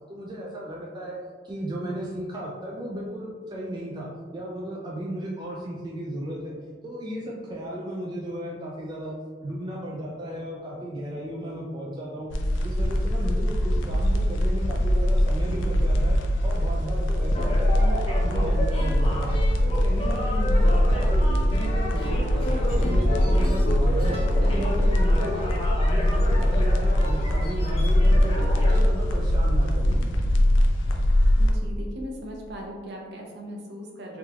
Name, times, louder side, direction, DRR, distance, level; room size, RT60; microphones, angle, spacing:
voice 1, 0.1-1.2 1.4-6.5 6.8-9.1 9.4-12.3 12.6-16.2 16.4-19.3 19.6-21.2 21.5-25.5 25.8-28.3 28.6-29.9, equal, 25° right, -3 dB, 0.3 m, -35 dB
sound 1, 12.3-31.5, equal, 75° left, 0.4 m, -22 dB
sound 2, 17.3-28.8, left 1 dB, 30° left, 0.6 m, -32 dB
voice 2, 31.4-34.2, equal, 60° right, -1 dB, 0.6 m, -38 dB
3.5 x 2.8 x 2.3 m, 1.5 s
head